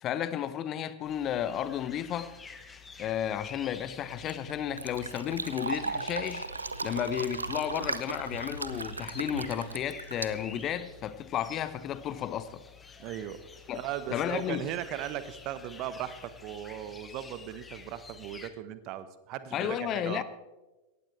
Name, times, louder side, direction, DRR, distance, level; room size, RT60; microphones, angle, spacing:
voice 1, 0.0-2.3 3.0-6.5 6.8-12.6 13.7-13.8 14.1-14.7 19.5-20.2, left 10 dB, 30° left, 0.7 m, -33 dB
sound 1, 1.0-18.5, left 5 dB, 15° left, 1.3 m, -50 dB
Fill (with liquid), 4.0-11.1, right 3 dB, 80° right, 0.6 m, -37 dB
voice 2, 13.0-13.4 13.7-20.2, right 11 dB, 40° right, 0.9 m, -38 dB
18.0 x 15.0 x 3.2 m
figure-of-eight pair, 90°, 0 cm